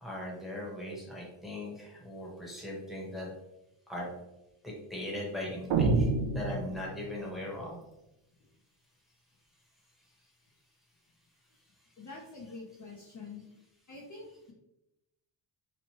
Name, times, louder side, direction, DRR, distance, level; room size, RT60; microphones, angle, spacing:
voice 1, 0.0-3.3 3.9-4.2 4.6-6.1 6.3-7.8, left 1 dB, ahead, -4 dB, 1.0 m, -39 dB
sound 1, 5.7-7.3, right 3 dB, 70° right, 0.5 m, -28 dB
voice 2, 12.0-13.4 13.9-14.5, left 3 dB, 35° left, -3 dB, 0.6 m, -46 dB
3.0 x 2.1 x 2.9 m, 0.91 s
cardioid pair, 80°, 50 cm